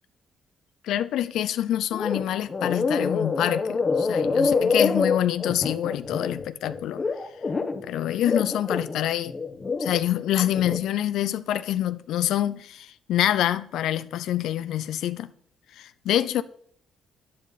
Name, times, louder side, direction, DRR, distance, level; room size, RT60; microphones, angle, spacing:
voice 1, 0.8-7.0 7.8-9.3 9.8-15.3 15.7-16.4, left 12 dB, 80° left, 0.4 m, -26 dB
sound 1, 1.9-2.2 2.5-7.8 8.2-10.0 10.4-10.8, left 4 dB, 35° left, 1.1 m, -26 dB
11.0 x 9.4 x 4.1 m
cardioid pair, 90°, 0 cm